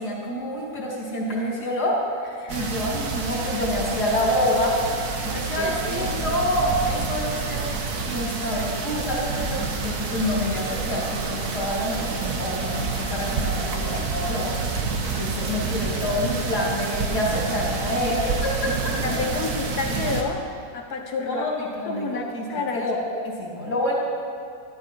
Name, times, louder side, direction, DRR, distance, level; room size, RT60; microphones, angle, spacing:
voice 1, 0.0-2.0 2.5-4.8 5.2-7.6 8.1-14.5 15.1-19.0 21.3-22.4 22.7-24.0, left 1 dB, 90° left, -5 dB, 3.8 m, -27 dB
voice 2, 2.4-2.8 5.4-6.4 13.3-13.8 19.0-20.5 20.7-21.5 21.8-22.9, left 4 dB, 75° left, 3 dB, 1.8 m, -31 dB
sound 1, 2.5-20.2, right 4 dB, 75° right, 1.7 m, -28 dB
sound 2, 6.0-14.1, right 5 dB, 30° right, 2.0 m, -40 dB
14.0 x 13.5 x 4.7 m, 2.4 s
omnidirectional pair, 1.7 m